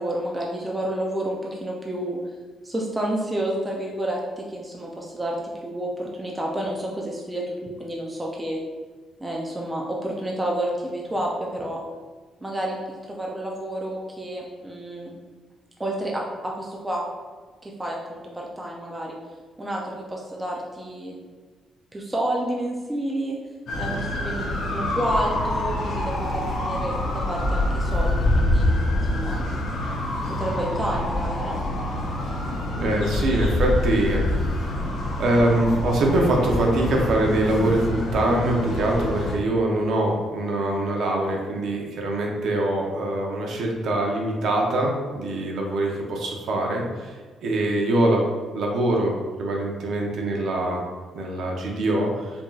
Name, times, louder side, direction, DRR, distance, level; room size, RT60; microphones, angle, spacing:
voice 1, 0.0-2.2 2.6-5.4 5.6-8.6 9.2-11.8 12.4-15.1 15.8-17.0 17.6-19.2 19.6-21.2 21.9-23.4 23.8-28.7 29.1-29.4 30.3-31.6, right 1 dB, 10° right, -2 dB, 0.3 m, -30 dB
sound 1, 23.7-39.4, left 1 dB, 60° left, 0.7 m, -26 dB
voice 2, 32.7-34.5 35.2-47.2 47.4-48.3 48.5-49.1 49.4-50.8 51.1-52.3, right 1 dB, 60° right, 0 dB, 0.7 m, -23 dB
4.5 x 2.7 x 2.4 m, 1.4 s
cardioid pair, 180°, 0 cm